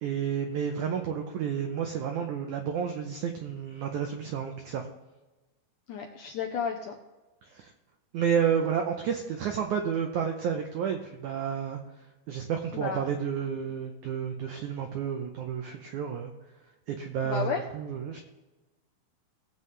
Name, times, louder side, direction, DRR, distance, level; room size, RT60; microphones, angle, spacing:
voice 1, 0.0-4.9 7.5-7.7 8.1-11.8 12.3-16.3 16.9-18.2, right 7 dB, 85° right, 4 dB, 1.7 m, -31 dB
voice 2, 5.9-7.0 12.7-13.1 17.2-17.6, left 6 dB, 75° left, 2 dB, 1.9 m, -32 dB
19.0 x 7.6 x 3.3 m, 1.1 s
omnidirectional pair, 4.5 m